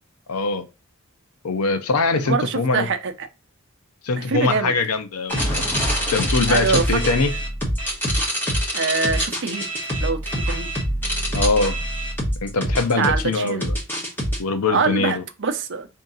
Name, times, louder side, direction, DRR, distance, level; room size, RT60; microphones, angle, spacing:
voice 1, 0.3-0.6 1.4-2.9 4.0-5.6 6.1-7.3 11.3-11.8 12.4-13.7 14.4-15.2, left 3 dB, 85° left, 0.6 m, -22 dB
voice 2, 2.1-3.3 4.1-4.7 6.5-7.0 8.7-9.6 10.0-10.2 10.5-10.7 13.0-13.7 14.7-15.9, right 5 dB, 55° right, 0.6 m, -24 dB
sound 1, 5.3-14.4, equal, 10° left, 1.1 m, -24 dB
3.7 x 2.8 x 3.8 m
head